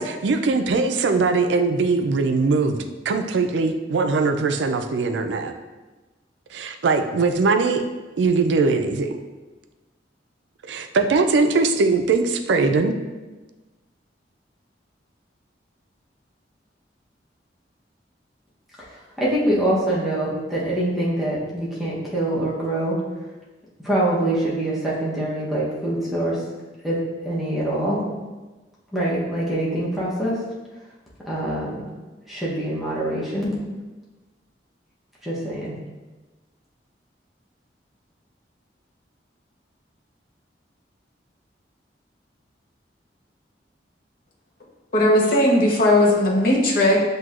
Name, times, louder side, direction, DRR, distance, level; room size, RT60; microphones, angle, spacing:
voice 1, 0.0-2.8 3.1-5.5 6.5-7.8 8.2-9.1 10.6-12.9, right 4 dB, 80° right, 7 dB, 0.4 m, -21 dB
voice 2, 18.8-23.0 23.8-26.4 26.8-27.0 27.2-28.0 28.9-30.4 31.3-31.8 32.3-33.5 35.2-35.8, right 1 dB, ahead, -8 dB, 0.8 m, -24 dB
voice 3, 44.9-47.0, left 1 dB, 55° left, -2 dB, 0.9 m, -17 dB
7.5 x 2.7 x 2.4 m, 1.2 s
head